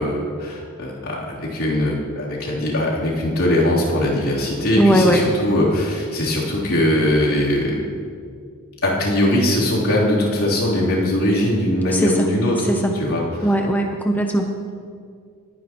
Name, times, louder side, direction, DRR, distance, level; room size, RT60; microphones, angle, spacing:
voice 1, 0.0-7.8 8.8-12.6 12.9-13.5, left 1 dB, 75° left, -6 dB, 3.3 m, -21 dB
voice 2, 4.8-5.2 11.9-12.3 12.7-12.9 13.4-14.5, equal, 10° left, 2 dB, 0.6 m, -18 dB
20.5 x 9.6 x 3.0 m, 2.2 s
head